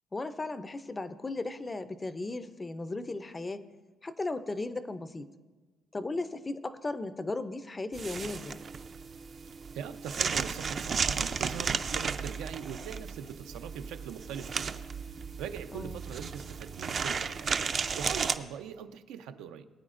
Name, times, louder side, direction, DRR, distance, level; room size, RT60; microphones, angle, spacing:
voice 1, 0.1-3.6 4.0-5.3 5.9-8.6 15.7-16.0, left 2 dB, 20° left, 12 dB, 0.4 m, -36 dB
sound 1, 7.9-18.3, right 5 dB, 40° right, 0.4 m, -34 dB
voice 2, 9.7-14.8 15.4-17.5 18.0-19.6, right 8 dB, 85° right, 9 dB, 0.6 m, -41 dB
19.5 x 9.0 x 2.5 m, 1.3 s
cardioid pair, 125°, 0 cm